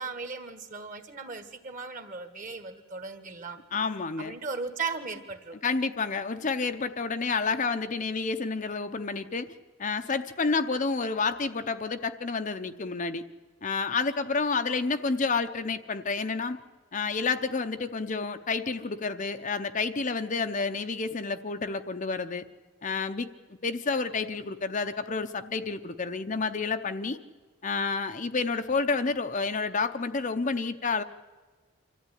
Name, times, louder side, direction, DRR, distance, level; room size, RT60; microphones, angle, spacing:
voice 1, 0.0-3.6 4.2-5.6, right 4 dB, 35° right, 9 dB, 1.6 m, -37 dB
voice 2, 3.7-4.3 5.6-9.5 9.8-13.2 13.6-16.6 16.9-22.4 22.8-23.3 23.6-27.2 27.6-31.0, left 4 dB, 35° left, 8 dB, 0.7 m, -29 dB
25.5 x 14.0 x 10.0 m, 1.4 s
head